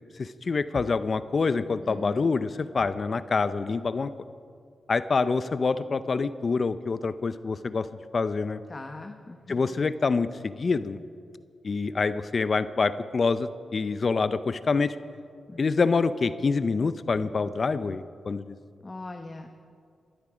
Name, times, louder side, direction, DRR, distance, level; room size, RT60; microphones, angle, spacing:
voice 1, 0.2-4.1 4.9-7.9 8.1-8.6 9.5-11.0 11.6-15.0 15.6-18.6, left 4 dB, 55° left, 14 dB, 0.6 m, -26 dB
voice 2, 1.8-2.3 8.7-9.7 15.5-15.8 18.8-19.5, left 2 dB, 35° left, 5 dB, 1.1 m, -41 dB
20.0 x 12.5 x 5.0 m, 2.3 s
supercardioid pair, 45°, 0 cm